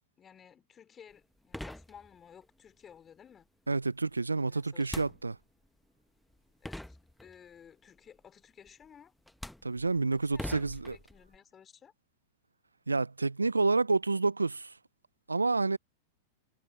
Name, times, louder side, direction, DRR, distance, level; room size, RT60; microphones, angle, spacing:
voice 1, 0.2-3.5 4.3-5.1 6.6-9.1 10.1-11.9, left 8 dB, 25° left, 4.3 m, -56 dB
sound 1, 1.1-1.2 1.5-2.4 4.8-5.7 6.3-6.4 6.6-7.6 8.7-8.9 9.3-11.4, left 1 dB, 5° left, 1.0 m, -43 dB
voice 2, 3.7-5.4 9.6-11.0 12.9-14.7 15.3-15.8, right 3 dB, 90° right, 0.4 m, -29 dB
figure-of-eight pair, 95°, 0 cm